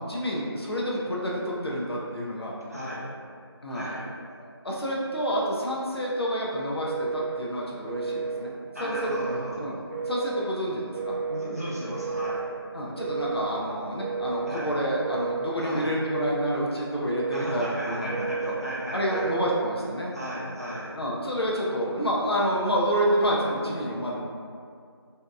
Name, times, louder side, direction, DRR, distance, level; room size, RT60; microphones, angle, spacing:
voice 1, 0.0-2.5 3.6-3.9 4.4-8.5 8.8-9.1 9.6-9.8 10.1-11.1 12.7-18.5 18.9-20.1 20.9-24.2, equal, 65° left, -4 dB, 0.5 m, -28 dB
voice 2, 2.7-3.1 3.7-4.1 8.7-9.7 11.2-12.5 14.5-14.7 15.6-15.9 17.3-19.3 20.1-20.9, equal, 35° right, -8 dB, 0.5 m, -34 dB
Telephone, 6.9-7.4 7.9-8.4 8.9-9.5 9.9-10.5 10.9-11.5 12.0-12.5 13.0-13.5 14.0-14.6 15.0-15.6 16.0-16.6 17.0-17.6 18.1-18.6 19.1-19.7, right 4 dB, 80° right, 0.9 m, -32 dB
2.7 x 2.3 x 2.2 m, 2.3 s
figure-of-eight pair, 180°, 14 cm